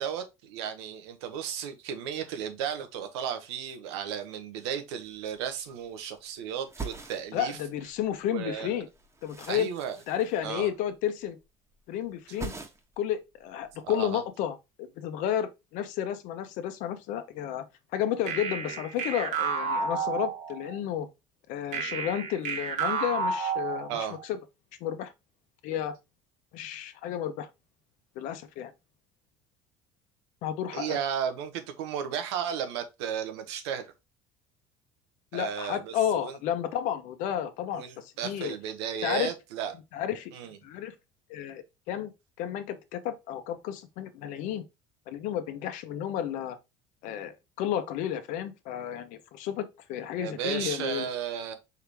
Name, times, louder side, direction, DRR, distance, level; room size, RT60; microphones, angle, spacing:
voice 1, 0.0-7.6 8.3-8.7 9.5-10.0 10.4-10.7 13.8-14.2 23.9-24.2 30.7-33.9 35.3-36.4 37.7-39.7 40.3-40.6 50.2-51.5, right 8 dB, 90° right, 1.0 m, -34 dB
sound 1, 5.0-5.1 5.4-6.2 6.6-8.2 8.5-11.0 11.3-11.8 12.0-13.1 13.4-14.2, right 4 dB, 20° right, 1.1 m, -43 dB
voice 2, 7.3-8.9 9.2-9.7 10.1-11.4 11.9-12.5 13.0-17.6 17.9-21.1 21.5-24.4 24.8-25.1 25.6-25.9 26.5-27.5 28.2-28.7 30.4-31.0 35.3-38.5 39.0-39.3 39.9-40.3 40.6-41.0 41.3-42.1 42.4-44.6 45.1-46.6 47.0-51.1, left 10 dB, 70° left, 0.8 m, -32 dB
sound 2, 18.3-20.8 21.7-24.2, right 5 dB, 60° right, 0.9 m, -31 dB
4.7 x 3.2 x 3.4 m
supercardioid pair, 100°, 14 cm